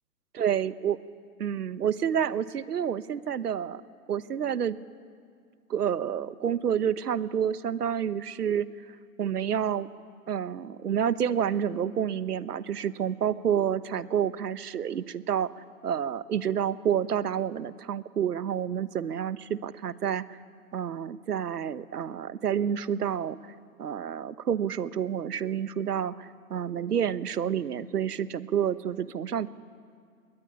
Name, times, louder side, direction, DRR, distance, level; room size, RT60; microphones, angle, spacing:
voice 1, 0.4-1.0 1.4-3.8 4.1-4.8 5.7-8.7 9.2-9.9 10.3-15.5 15.8-20.4 20.7-23.4 23.8-29.5, right 8 dB, 90° right, 15 dB, 1.2 m, -29 dB
25.5 x 21.0 x 9.8 m, 2.2 s
hypercardioid pair, 165°, 45 cm